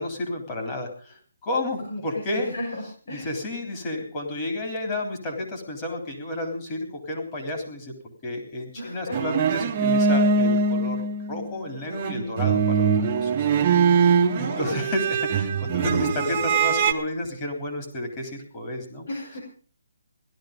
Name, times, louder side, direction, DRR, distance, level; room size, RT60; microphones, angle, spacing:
voice 1, 0.0-2.5 3.1-13.5 13.9-19.1, left 1 dB, 20° left, 1 dB, 3.7 m, -31 dB
voice 2, 1.9-3.3 8.8-9.2 14.4-14.8 19.1-19.4, left 1 dB, 65° left, 0 dB, 6.1 m, -35 dB
sound 1, 9.1-11.6 11.9-16.9, right 5 dB, 25° right, 1.2 m, -22 dB
16.5 x 12.5 x 5.2 m, 0.40 s
hypercardioid pair, 170°, 0 cm